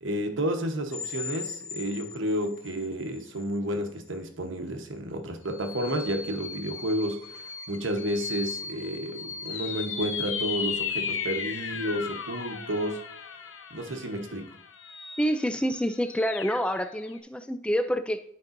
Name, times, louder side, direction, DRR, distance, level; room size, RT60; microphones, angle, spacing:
voice 1, 0.0-13.0 13.7-14.5, equal, 70° right, 5 dB, 1.1 m, -31 dB
sound 1, 0.9-2.9 3.4-3.5 5.5-17.2, left 6 dB, 75° left, 0.7 m, -36 dB
voice 2, 15.2-18.2, equal, 5° left, 10 dB, 0.3 m, -27 dB
11.0 x 5.2 x 2.6 m, 0.69 s
head